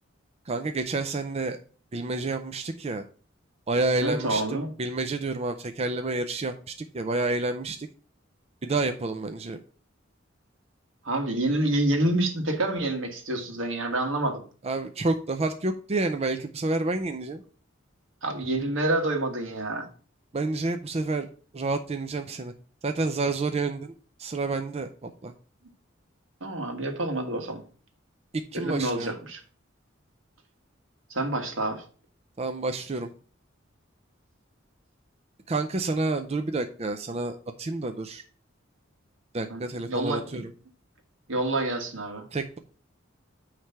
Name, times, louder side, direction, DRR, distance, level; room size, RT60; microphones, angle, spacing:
voice 1, 0.5-1.6 1.9-3.0 3.7-7.9 8.6-9.6 14.6-17.4 20.3-21.3 21.5-22.5 22.8-23.9 24.2-25.3 28.5-29.1 32.4-33.1 35.5-38.2 39.3-40.4 42.3-42.6, right 3 dB, 35° right, 7 dB, 0.5 m, -29 dB
voice 2, 4.0-4.7 11.0-14.4 18.2-19.9 26.4-27.6 28.5-29.4 31.1-31.8 39.5-40.4 41.3-42.2, right 2 dB, 80° right, 4 dB, 1.6 m, -28 dB
9.3 x 3.3 x 5.5 m, 0.40 s
head